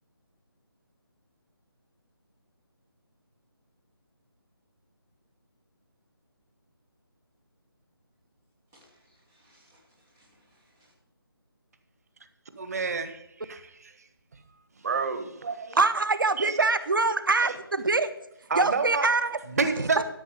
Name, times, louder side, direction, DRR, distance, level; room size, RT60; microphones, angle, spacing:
voice 1, 8.7-10.9, equal, 5° right, -3 dB, 0.3 m, -63 dB
voice 2, 12.6-14.1 14.8-15.8 16.4-16.6 17.5-17.6 18.5-19.1 19.5-20.0, right 4 dB, 40° right, 10 dB, 1.1 m, -29 dB
voice 3, 15.8-18.1 18.6-19.4, right 3 dB, 60° right, 11 dB, 0.9 m, -24 dB
12.5 x 6.0 x 6.6 m, 0.84 s
figure-of-eight pair, 155°, 13 cm